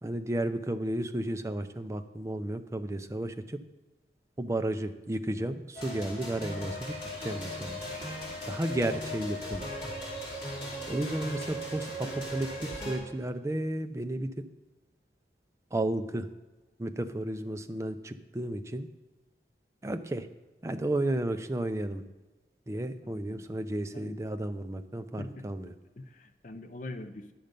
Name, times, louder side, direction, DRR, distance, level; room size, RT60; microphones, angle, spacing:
voice 1, 0.0-3.6 4.4-6.9 7.2-7.8 8.4-9.6 10.9-14.4 15.7-16.3 16.8-18.9 19.8-20.3 20.6-22.0 22.7-25.7, right 1 dB, 15° right, 8 dB, 0.4 m, -33 dB
sound 1, 5.7-13.0, equal, 30° left, 2.6 m, -38 dB
voice 2, 23.0-23.5 23.9-24.2 25.2-25.4 26.0-27.3, left 2 dB, 45° left, 8 dB, 0.6 m, -43 dB
10.0 x 6.6 x 5.2 m, 1.2 s
head